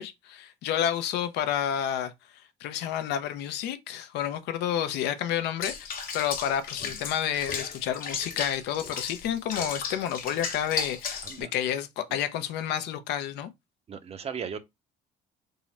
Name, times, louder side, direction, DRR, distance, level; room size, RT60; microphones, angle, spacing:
voice 1, 0.0-2.1 2.6-13.5, left 10 dB, 85° left, 0.5 m, -30 dB
Water / Bathtub (filling or washing), 5.6-11.4, left 6 dB, 55° left, 0.9 m, -35 dB
voice 2, 13.9-14.6, right 6 dB, 35° right, 0.5 m, -36 dB
3.6 x 2.0 x 4.1 m
cardioid pair, 110°, 17 cm